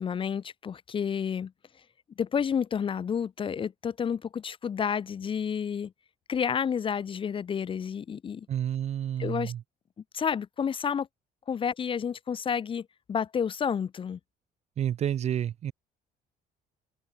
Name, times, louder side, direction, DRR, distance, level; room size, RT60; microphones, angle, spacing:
voice 1, 0.0-1.5 2.2-5.9 6.3-8.5 9.2-9.5 10.1-11.1 11.5-14.2, left 7 dB, 30° left, 0.5 m, -30 dB
voice 2, 8.5-9.6 14.8-15.7, right 10 dB, 40° right, 0.4 m, -30 dB
open air
cardioid pair, 110°, 17 cm